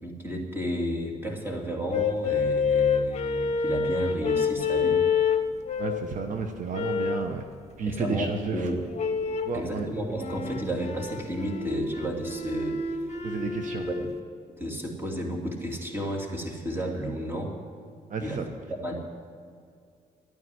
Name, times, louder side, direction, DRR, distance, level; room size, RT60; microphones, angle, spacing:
voice 1, 0.0-5.0 7.9-8.8 9.5-13.0 13.9-14.1 14.6-17.5 18.2-18.4 18.8-19.0, right 1 dB, 15° right, 0 dB, 2.8 m, -32 dB
sound 1, 1.9-6.1 6.7-7.3 8.9-9.6 10.2-14.1, left 5 dB, 45° left, 1.0 m, -27 dB
voice 2, 5.8-7.4 7.8-8.8 9.4-9.9 13.2-13.9 18.1-18.5, right 4 dB, 55° right, 5 dB, 1.0 m, -31 dB
12.0 x 9.5 x 10.0 m, 2.2 s
cardioid pair, 105°, 15 cm